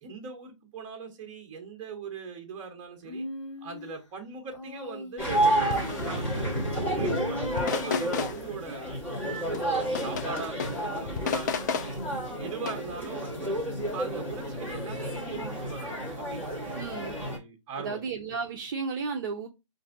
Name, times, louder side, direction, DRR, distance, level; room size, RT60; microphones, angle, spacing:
voice 1, 0.0-3.3 3.6-5.8 6.0-6.7 6.9-9.0 9.4-12.0 12.4-13.6 13.9-18.0, right 5 dB, 20° right, 1.0 m, -40 dB
Human voice, 3.0-4.0 4.5-6.1 6.9-8.2, left 1 dB, 60° left, 1.3 m, -40 dB
sound 1, 5.2-5.4 5.7-6.3 7.4-8.4 9.2-10.8 11.1-12.0 12.7-12.8, left 6 dB, 35° left, 0.5 m, -33 dB
sound 2, 5.2-17.4, right 1 dB, 10° left, 1.2 m, -31 dB
voice 2, 16.7-17.2 17.8-19.5, right 5 dB, 40° right, 0.6 m, -33 dB
5.0 x 2.6 x 2.5 m
hypercardioid pair, 155°, 16 cm